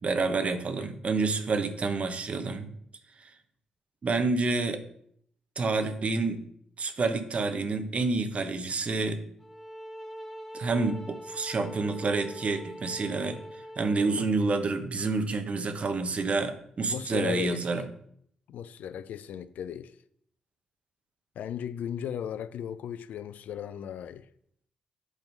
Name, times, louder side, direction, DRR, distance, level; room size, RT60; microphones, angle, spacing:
voice 1, 0.0-2.7 4.0-4.8 5.6-6.4 6.8-9.2 10.5-13.4 13.8-17.8, right 3 dB, 50° right, 1.0 m, -28 dB
sound 1, 9.4-14.4, equal, ahead, 1.7 m, -43 dB
voice 2, 16.9-17.7 18.5-20.0 21.4-24.3, left 9 dB, 70° left, 0.4 m, -36 dB
8.3 x 3.5 x 5.2 m
hypercardioid pair, 45°, 3 cm